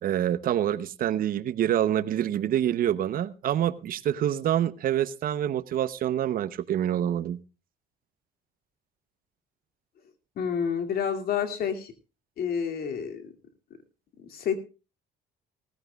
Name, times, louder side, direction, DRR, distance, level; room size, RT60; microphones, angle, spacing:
voice 1, 0.0-7.4, right 11 dB, 60° right, 16 dB, 0.9 m, -26 dB
voice 2, 10.4-11.9 12.4-13.3 14.2-14.5, left 7 dB, 65° left, 7 dB, 2.7 m, -29 dB
19.0 x 14.5 x 2.4 m, 0.31 s
cardioid pair, 110°, 17 cm